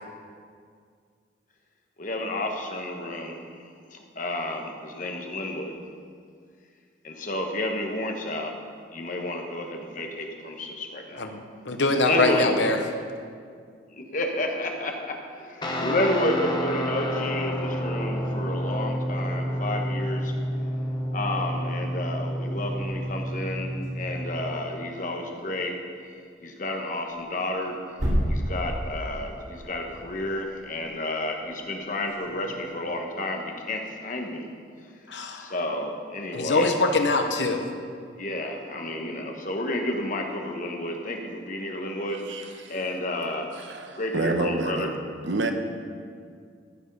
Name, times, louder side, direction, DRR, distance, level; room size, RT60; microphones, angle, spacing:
voice 1, 2.0-5.8 7.0-8.5 8.9-11.3 12.0-12.5 13.9-20.3 21.1-25.8 26.4-27.8 28.3-34.5 35.1-36.7 38.2-43.5 43.9-44.9, left 1 dB, 45° left, 3 dB, 1.2 m, -31 dB
voice 2, 11.2-12.8 35.1-35.5 36.3-37.7, left 2 dB, 75° left, 6 dB, 1.0 m, -24 dB
Guitar, 15.6-24.5, equal, 25° left, 1.0 m, -29 dB
sound 1, 18.5-19.5 22.2-25.8 26.9-32.8, equal, 60° right, 2.7 m, -35 dB
voice 3, 42.3-42.9 43.6-45.0 45.2-45.5, right 2 dB, 80° right, 5 dB, 1.0 m, -29 dB
14.5 x 6.4 x 5.4 m, 2.1 s
head